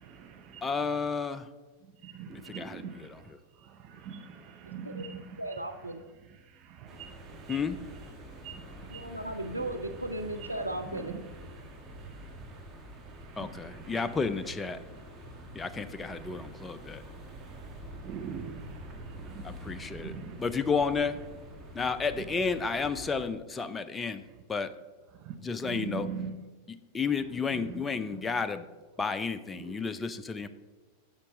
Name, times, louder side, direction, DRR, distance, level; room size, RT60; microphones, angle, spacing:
voice 1, 0.0-0.6 2.0-3.1 3.6-5.4 6.6-7.6 8.4-9.2 10.9-11.2 13.2-13.9 16.3-16.4 17.9-20.4 25.2-25.4 25.6-26.3 27.7-27.8 29.6-29.8, right 7 dB, 35° right, 6 dB, 0.5 m, -42 dB
voice 2, 0.6-1.5 2.3-3.4 7.5-7.8 13.4-14.8 15.5-17.0 19.4-21.2 21.7-24.2 24.5-24.7 25.4-26.1 26.7-28.7 29.0-30.5, left 5 dB, 15° left, 12 dB, 0.4 m, -32 dB
voice 3, 4.7-5.1 5.4-6.0 8.9-11.2, right 1 dB, 85° right, 6 dB, 0.5 m, -36 dB
sound 1, 6.9-23.3, equal, 20° right, 1.2 m, -46 dB
9.7 x 6.5 x 2.6 m, 1.3 s
figure-of-eight pair, 90°, 0 cm